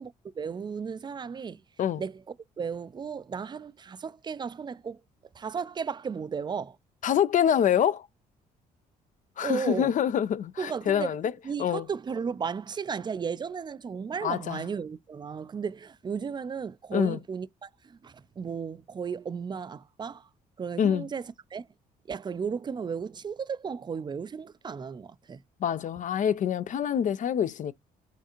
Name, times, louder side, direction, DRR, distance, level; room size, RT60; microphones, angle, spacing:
voice 1, 0.0-1.6 2.0-2.2 2.6-5.0 5.3-6.8 9.4-9.9 10.6-11.2 11.4-20.3 20.6-21.7 22.1-25.4, right 6 dB, 25° right, 0.3 m, -34 dB
voice 2, 7.0-8.1 9.4-11.2 11.6-11.8 14.2-14.6 16.9-17.2 20.8-21.1 25.6-27.7, left 9 dB, 45° left, 0.4 m, -26 dB
5.7 x 2.4 x 2.9 m
hypercardioid pair, 55°, 19 cm